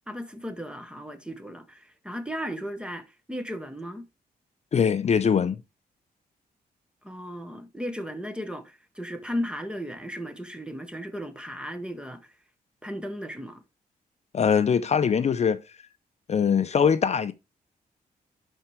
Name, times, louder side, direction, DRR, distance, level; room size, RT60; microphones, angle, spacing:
voice 1, 0.1-4.0 7.0-12.3 12.8-13.6, equal, 5° right, 1.1 m, -35 dB
voice 2, 4.7-5.6 14.3-15.6 16.3-17.3, left 7 dB, 45° left, 0.5 m, -22 dB
11.5 x 4.5 x 3.2 m
cardioid pair, 110°, 16 cm